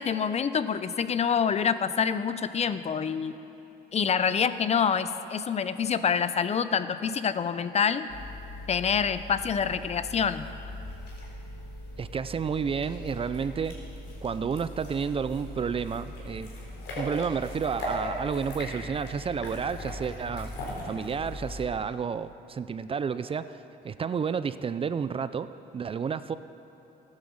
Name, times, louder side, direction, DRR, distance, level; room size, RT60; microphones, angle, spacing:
voice 1, 0.0-3.4 3.9-8.1 8.7-10.5, left 7 dB, 40° left, 12 dB, 0.6 m, -26 dB
sound 1, 8.1-21.7, left 1 dB, 80° left, 3.9 m, -39 dB
voice 2, 12.0-13.7 14.2-16.5 17.0-20.5 20.8-26.3, right 6 dB, 35° right, 13 dB, 0.5 m, -31 dB
14.0 x 9.8 x 7.1 m, 2.9 s
cardioid pair, 95°, 17 cm